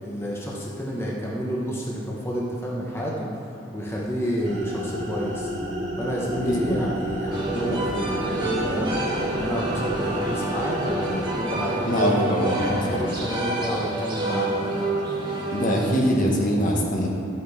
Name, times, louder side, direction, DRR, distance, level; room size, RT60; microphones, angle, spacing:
voice 1, 0.0-3.4 3.7-5.5 6.0-8.9 9.4-12.3 12.8-14.7, equal, 15° left, -4 dB, 1.1 m, -30 dB
sound 1, 4.4-11.9, equal, 80° right, 2.2 m, -31 dB
voice 2, 6.4-6.8 11.8-13.0 15.5-17.1, equal, 45° left, -1 dB, 1.5 m, -23 dB
sound 2, 7.3-16.5, right 1 dB, 25° right, 1.6 m, -28 dB
12.0 x 8.4 x 4.3 m, 2.8 s
head